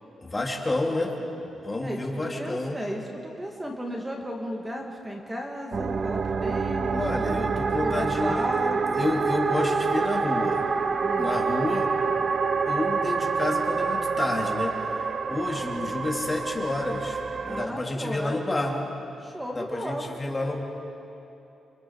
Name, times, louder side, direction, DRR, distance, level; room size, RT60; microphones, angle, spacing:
voice 1, 0.2-1.1 1.6-2.8 6.9-8.4 8.9-10.7 11.2-11.9 12.6-15.0 15.3-17.2 17.5-18.8 19.5-20.6, left 2 dB, 20° left, 0 dB, 2.8 m, -29 dB
voice 2, 1.8-7.0 7.8-9.0 11.0-11.3 17.5-18.8 19.2-20.2, equal, 15° right, 0 dB, 2.0 m, -34 dB
sound 1, 5.7-17.7, right 5 dB, 40° right, 0.6 m, -27 dB
29.5 x 25.5 x 4.7 m, 2.9 s
cardioid pair, 110°, 0 cm